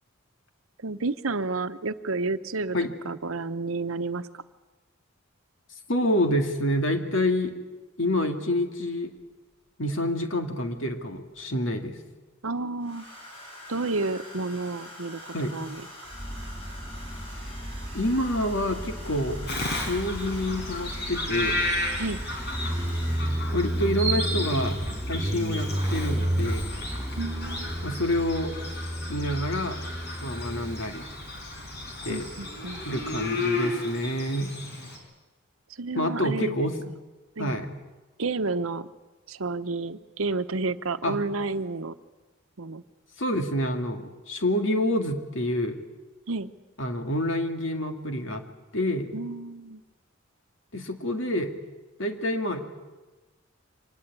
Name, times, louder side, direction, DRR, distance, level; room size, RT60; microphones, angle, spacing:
voice 1, 0.8-2.8 3.0-4.3 12.4-13.0 13.7-15.8 22.0-22.2 27.2-27.7 32.1-32.8 35.8-36.6 37.4-37.5 38.2-38.9 39.3-41.9 42.6-42.8 46.3-46.5 49.1-49.8, right 3 dB, 90° right, 11 dB, 1.0 m, -30 dB
voice 2, 5.9-7.5 8.0-9.1 9.8-12.0 15.3-15.6 17.9-19.4 19.7-21.6 23.5-24.8 25.1-26.7 27.8-28.5 29.1-29.8 30.2-31.1 32.0-32.3 32.8-34.5 35.9-36.8 37.4-37.7 41.0-41.2 43.2-45.8 46.8-48.4 48.7-49.1 50.7-51.5 52.0-52.6, left 1 dB, 70° left, 5 dB, 2.3 m, -27 dB
Domestic sounds home sounds, 11.2-11.4 12.8-23.6 24.8-25.1 25.3-25.7, left 1 dB, 25° left, 7.1 m, -45 dB
Motorcycle, 16.1-33.3, right 1 dB, 15° right, 3.2 m, -32 dB
Bird vocalization bird call bird song, 19.5-35.0, left 1 dB, 55° left, 4.8 m, -34 dB
25.0 x 20.0 x 8.4 m, 1.2 s
head